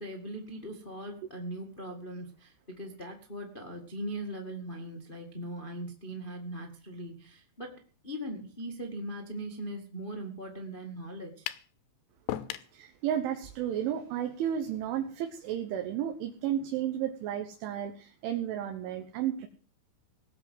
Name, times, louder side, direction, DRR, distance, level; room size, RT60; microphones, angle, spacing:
voice 1, 0.0-7.7 8.0-11.5, right 1 dB, 55° left, 2 dB, 0.5 m, -40 dB
sound 1, 11.5-11.7 12.3-12.7, left 13 dB, 75° left, 2.9 m, -35 dB
voice 2, 12.7-19.5, right 10 dB, 85° right, 5 dB, 3.6 m, -33 dB
18.5 x 7.3 x 7.8 m, 0.40 s
omnidirectional pair, 5.4 m